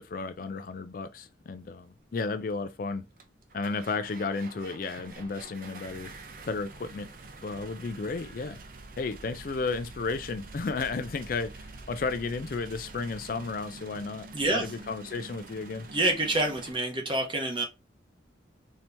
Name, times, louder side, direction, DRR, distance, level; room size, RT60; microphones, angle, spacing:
voice 1, 0.0-3.1 3.5-6.1 6.5-7.1 7.4-8.6 9.0-15.9, left 4 dB, 45° left, 0.3 m, -33 dB
sound 1, 2.5-2.6 3.2-16.7, right 3 dB, 45° right, 0.6 m, -46 dB
voice 2, 14.3-14.7 15.9-17.6, right 2 dB, 25° right, 1.0 m, -27 dB
4.3 x 2.7 x 3.3 m
head